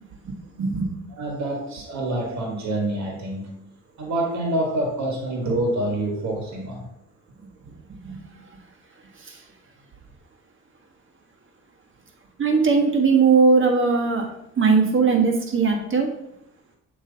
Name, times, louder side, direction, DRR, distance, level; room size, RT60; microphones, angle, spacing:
voice 1, 0.6-0.9 8.0-8.2 9.2-9.4 12.4-14.3 14.6-16.1, right 4 dB, 40° right, 2 dB, 1.4 m, -19 dB
voice 2, 1.1-3.6 4.0-6.9, right 1 dB, 65° right, 0 dB, 1.6 m, -26 dB
8.0 x 3.1 x 3.9 m, 0.78 s
cardioid pair, 90°, 30 cm